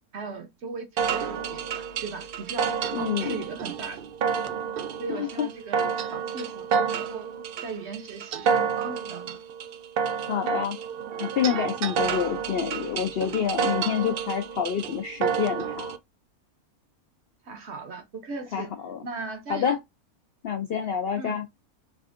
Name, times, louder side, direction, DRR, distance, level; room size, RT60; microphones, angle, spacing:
voice 1, 0.1-4.0 5.0-5.8 6.1-7.3 7.6-9.4 17.4-18.7 19.0-19.8 21.2-21.4, right 4 dB, 55° right, 0.9 m, -38 dB
sound 1, 1.0-16.0, right 6 dB, 85° right, 0.5 m, -29 dB
voice 2, 2.9-3.4 5.1-5.5 5.8-5.9 10.3-10.8 11.2-15.9 18.5-19.0 19.5-19.8 20.4-21.5, left 8 dB, 70° left, 0.5 m, -28 dB
3.4 x 2.5 x 2.4 m
omnidirectional pair, 1.5 m